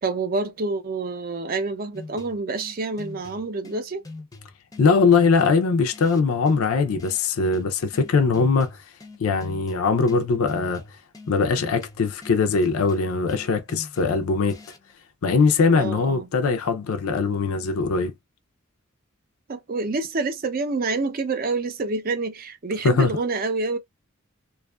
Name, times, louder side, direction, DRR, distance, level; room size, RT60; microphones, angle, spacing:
voice 1, 0.0-4.0 15.7-16.3 19.5-23.8, right 3 dB, 40° right, 0.5 m, -27 dB
sound 1, 1.9-14.9, left 3 dB, 15° left, 0.4 m, -44 dB
voice 2, 4.8-8.8 9.2-10.8 11.3-14.6 15.2-18.1 22.8-23.1, left 4 dB, 80° left, 0.4 m, -21 dB
2.5 x 2.3 x 2.2 m
head